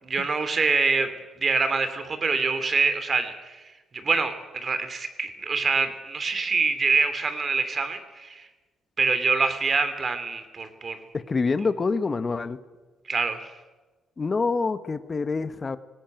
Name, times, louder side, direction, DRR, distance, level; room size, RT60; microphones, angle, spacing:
voice 1, 0.0-3.6 3.9-8.5 9.0-11.0 13.1-13.5, right 4 dB, 40° right, 10 dB, 2.9 m, -25 dB
voice 2, 11.1-12.6 14.2-15.8, left 4 dB, 35° left, 12 dB, 1.1 m, -26 dB
19.0 x 17.0 x 9.2 m, 1.2 s
cardioid pair, 90°, 0 cm